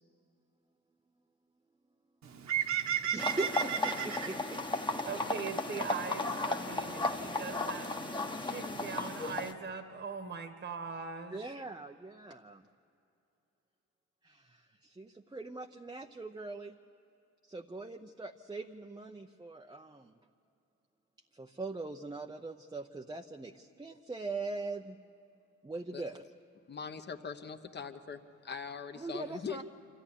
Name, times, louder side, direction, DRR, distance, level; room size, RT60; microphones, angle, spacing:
Bird, 2.2-9.5, right 9 dB, 65° right, 1.5 m, -38 dB
voice 1, 2.9-4.8 11.3-12.6 14.2-16.7 17.4-20.1 21.3-25.0 25.6-26.2 29.0-29.6, right 3 dB, 15° right, 3 dB, 0.7 m, -41 dB
sound 1, 3.2-9.5, left 2 dB, 15° left, 1.3 m, -35 dB
voice 2, 5.0-7.9 8.4-11.5, right 5 dB, 35° right, 7 dB, 1.4 m, -41 dB
voice 3, 26.7-29.6, left 6 dB, 35° left, 6 dB, 1.2 m, -42 dB
25.5 x 14.0 x 9.9 m, 2.7 s
cardioid pair, 90°, 30 cm